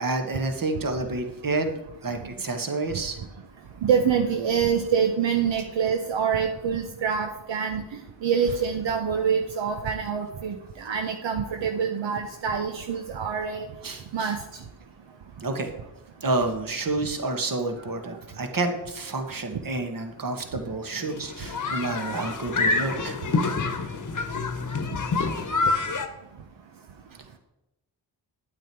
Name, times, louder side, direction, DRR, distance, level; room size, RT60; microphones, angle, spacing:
voice 1, 0.0-1.7 2.0-3.2 13.8-14.3 15.4-15.7 16.2-23.2 25.3-25.4, right 2 dB, 45° right, 5 dB, 1.6 m, -29 dB
voice 2, 3.8-7.8 8.2-13.7 14.1-14.4, right 7 dB, 70° right, 4 dB, 1.0 m, -25 dB
sound 1, 21.1-26.1, left 3 dB, 40° left, 1.2 m, -27 dB
8.9 x 8.0 x 4.6 m, 0.89 s
supercardioid pair, 45°, 46 cm